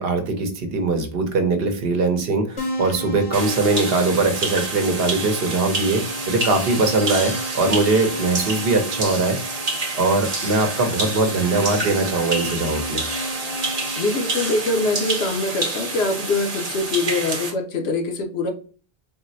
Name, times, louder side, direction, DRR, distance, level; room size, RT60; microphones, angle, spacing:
voice 1, 0.0-9.4 10.0-13.0, right 3 dB, 70° right, 6 dB, 0.9 m, -21 dB
Keyboard (musical), 2.6-14.4, left 1 dB, 45° left, 0.7 m, -34 dB
sound 1, 3.3-17.5, right 3 dB, 40° right, 0.8 m, -28 dB
voice 2, 14.0-18.5, left 3 dB, 80° left, 6 dB, 0.9 m, -23 dB
3.7 x 2.0 x 2.6 m, 0.39 s
omnidirectional pair, 1.0 m